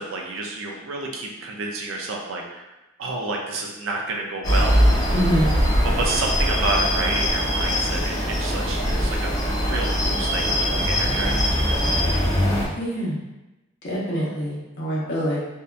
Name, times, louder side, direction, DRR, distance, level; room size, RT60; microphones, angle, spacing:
voice 1, 0.0-2.6 3.0-4.8 5.8-9.3 9.7-12.1, right 3 dB, 70° right, 1 dB, 0.4 m, -30 dB
sound 1, 4.4-12.7, equal, 20° left, 0.4 m, -21 dB
voice 2, 5.1-5.5 12.8-13.2 13.8-15.4, equal, 60° left, -7 dB, 0.9 m, -25 dB
2.7 x 2.4 x 2.2 m, 1.0 s
head